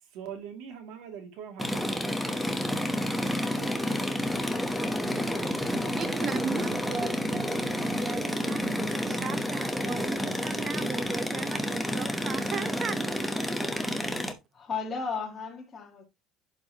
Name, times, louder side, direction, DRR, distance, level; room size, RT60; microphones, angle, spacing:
voice 1, 0.0-2.7 3.5-4.4, right 7 dB, 65° right, 2.4 m, -45 dB
sound 1, 1.6-14.3, equal, ahead, 0.9 m, -30 dB
voice 2, 6.0-8.8 9.0-13.9, right 6 dB, 30° right, 0.9 m, -37 dB
voice 3, 14.5-16.0, left 5 dB, 20° left, 1.9 m, -34 dB
11.5 x 4.8 x 2.9 m
cardioid pair, 165°, 0 cm